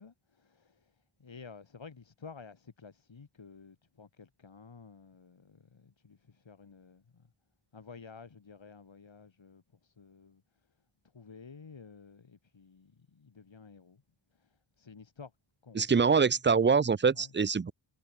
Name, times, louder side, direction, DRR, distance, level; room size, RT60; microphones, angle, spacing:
voice 1, 0.0-7.3 7.7-10.8 11.1-14.0 14.3-15.3 15.6-16.1 17.1-17.3, left 5 dB, 65° left, 3.5 m, -52 dB
voice 2, 15.8-17.7, right 5 dB, 25° right, 0.5 m, -24 dB
wide cardioid pair, 80°, 48 cm